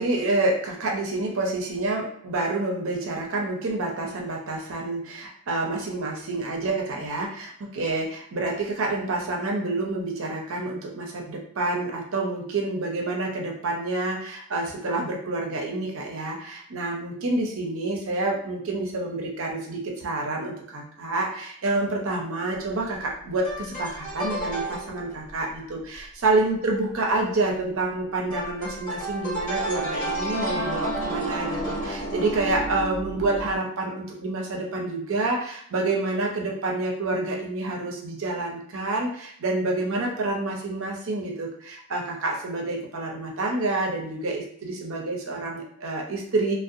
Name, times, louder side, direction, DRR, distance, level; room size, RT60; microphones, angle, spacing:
voice 1, 0.0-46.5, right 2 dB, 65° right, 0 dB, 0.5 m, -28 dB
sound 1, 22.6-22.8 23.4-25.3 28.3-33.6, right 1 dB, 35° left, 1.0 m, -31 dB
2.5 x 2.1 x 2.6 m, 0.64 s
head